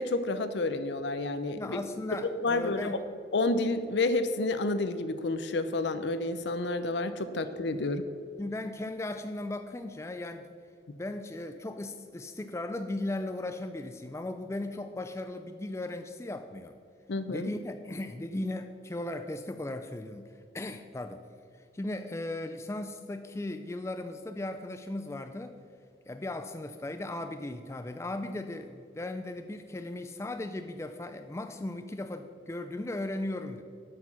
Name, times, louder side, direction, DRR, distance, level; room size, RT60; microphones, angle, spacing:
voice 1, 0.0-1.8 2.4-3.0 3.3-8.0 17.1-17.5, left 2 dB, 70° left, 11 dB, 0.6 m, -30 dB
voice 2, 1.6-3.0 8.4-10.5 10.9-16.7 17.3-21.2 21.7-25.6 26.1-33.6, left 2 dB, 15° left, 8 dB, 0.3 m, -37 dB
8.0 x 6.7 x 5.9 m, 2.3 s
head